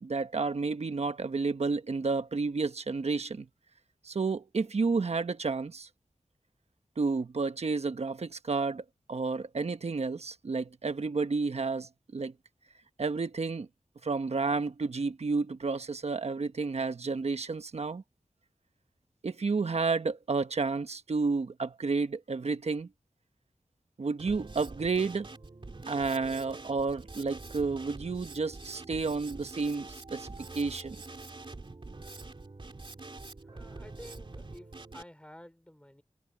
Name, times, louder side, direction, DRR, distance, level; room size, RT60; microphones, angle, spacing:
voice 1, 0.0-3.5 4.0-5.9 7.0-12.3 13.0-13.7 14.0-18.0 19.2-22.9 24.0-25.3 25.9-30.3 30.5-31.0, right 4 dB, 70° right, 1.2 m, -31 dB
Drum kit, 24.2-35.0, right 3 dB, 50° right, 2.7 m, -45 dB
voice 2, 33.4-36.0, left 1 dB, 10° left, 5.0 m, -51 dB
wide cardioid pair, 75°, 11 cm